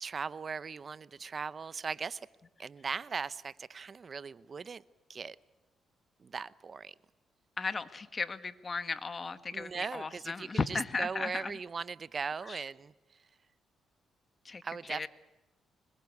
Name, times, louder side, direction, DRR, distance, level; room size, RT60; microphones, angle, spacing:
voice 1, 0.0-2.2 2.6-4.8 5.1-5.4 6.2-6.9 9.5-12.9 14.6-15.1, right 5 dB, 40° right, 18 dB, 0.7 m, -39 dB
voice 2, 7.6-11.5 12.5-12.6 14.4-14.6 14.9-15.1, left 4 dB, 35° left, 12 dB, 1.5 m, -35 dB
25.5 x 21.5 x 8.4 m, 1.1 s
cardioid pair, 90°, 0 cm